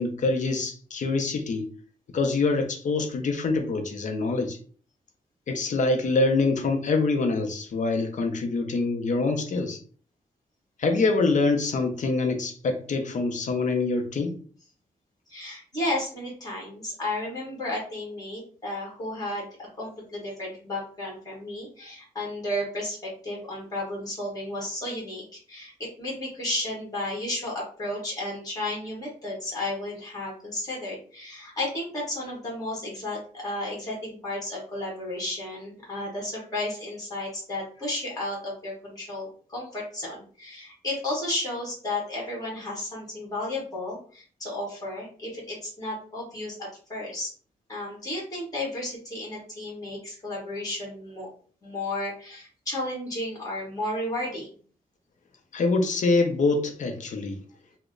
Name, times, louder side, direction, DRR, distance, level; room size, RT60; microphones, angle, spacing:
voice 1, 0.0-1.7 2.1-4.6 5.5-9.8 10.8-14.4 55.5-57.4, left 3 dB, 55° left, 4 dB, 0.5 m, -25 dB
voice 2, 15.3-47.3 47.7-51.3 51.6-54.5, left 1 dB, 25° left, -4 dB, 1.4 m, -33 dB
3.0 x 2.1 x 3.6 m, 0.43 s
wide cardioid pair, 165°, 15 cm